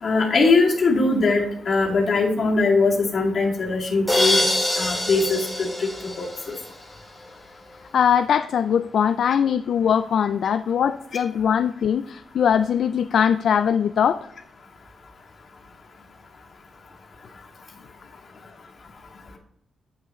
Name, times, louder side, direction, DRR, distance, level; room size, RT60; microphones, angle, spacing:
voice 1, 0.0-4.5 4.8-6.5, left 3 dB, 45° left, -2 dB, 2.4 m, -21 dB
sound 1, 4.1-6.9, left 1 dB, ahead, 3.0 m, -24 dB
voice 2, 7.9-14.2, left 8 dB, 65° left, 10 dB, 0.3 m, -21 dB
9.6 x 7.9 x 3.1 m, 0.74 s
wide cardioid pair, 150°, 0 cm